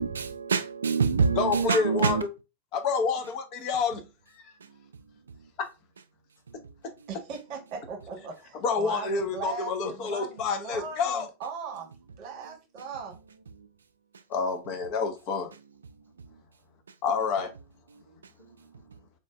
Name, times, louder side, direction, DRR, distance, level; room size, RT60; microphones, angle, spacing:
voice 1, 0.0-2.2, right 5 dB, 70° right, 0.3 m, -25 dB
voice 2, 1.4-2.2 2.7-4.0 5.6-5.7 6.8-6.9 8.6-11.3 14.3-15.5 17.0-17.5, left 5 dB, 40° left, 0.7 m, -28 dB
voice 3, 7.1-11.9 12.2-13.1, right 5 dB, 40° right, 1.1 m, -39 dB
3.8 x 2.4 x 2.3 m
figure-of-eight pair, 90°, 0 cm